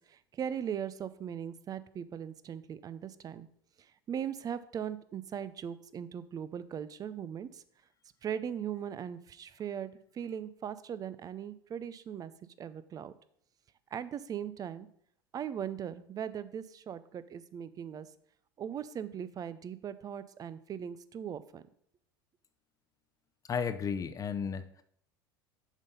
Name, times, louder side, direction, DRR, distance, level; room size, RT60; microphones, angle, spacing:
voice 1, 0.0-3.5 3.8-7.6 8.2-12.3 12.6-13.1 13.9-14.9 15.3-18.1 18.6-21.6, right 8 dB, 30° right, 15 dB, 0.6 m, -39 dB
voice 2, 23.5-24.8, left 6 dB, 30° left, 10 dB, 0.8 m, -34 dB
7.2 x 5.5 x 5.4 m, 0.66 s
hypercardioid pair, 85°, 12 cm